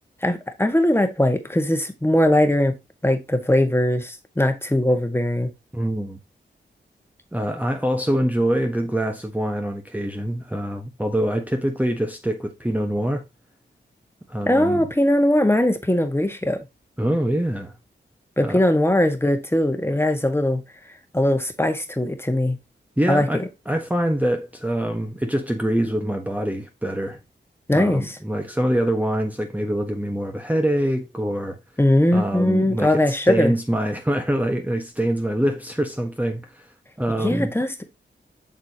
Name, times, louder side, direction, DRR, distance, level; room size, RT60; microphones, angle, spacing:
voice 1, 0.2-2.8 3.0-5.5 14.5-16.6 18.4-20.6 21.1-22.6 23.1-23.5 27.7-28.2 31.8-33.5 37.2-37.8, left 1 dB, 10° left, 1.6 m, -20 dB
voice 2, 5.7-6.2 7.3-13.2 14.3-14.9 17.0-17.7 18.4-18.6 23.0-27.2 27.7-31.6 32.1-36.6 37.0-37.5, right 1 dB, 10° right, 1.2 m, -24 dB
7.6 x 6.8 x 2.9 m
cardioid pair, 55°, 19 cm